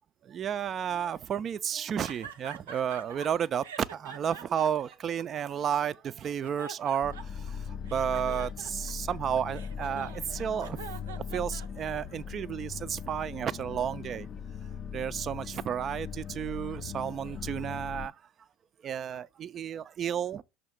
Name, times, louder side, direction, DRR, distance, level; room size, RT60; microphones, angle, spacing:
voice 1, 0.3-7.6 7.8-10.8 11.1-14.3 14.9-18.1 18.8-20.4, right 8 dB, 40° right, 0.4 m, -32 dB
sound 1, 2.0-3.3 3.6-5.8 6.2-7.5 7.9-12.1, right 6 dB, 85° right, 0.6 m, -45 dB
sound 2, 7.0-18.1, left 7 dB, 40° left, 0.3 m, -40 dB
6.3 x 2.8 x 5.7 m
hypercardioid pair, 80°, 0 cm